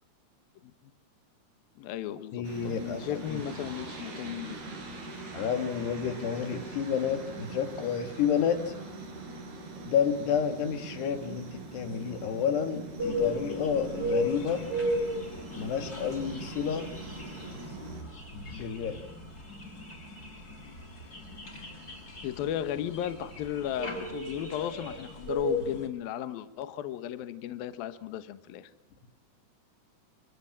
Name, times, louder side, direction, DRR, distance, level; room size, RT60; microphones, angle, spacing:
voice 1, 1.8-4.6 22.2-28.7, left 11 dB, 70° left, 11 dB, 2.9 m, -35 dB
voice 2, 2.3-3.0 3.3-3.4 5.3-8.7 9.8-14.7 15.6-16.9 18.3-19.0, left 7 dB, 90° left, 8 dB, 4.4 m, -30 dB
sound 1, 2.4-18.0, right 3 dB, 75° right, 8.4 m, -43 dB
sound 2, 13.0-25.8, left 1 dB, 20° left, 6.2 m, -35 dB
28.0 x 26.5 x 7.5 m, 0.83 s
omnidirectional pair, 4.6 m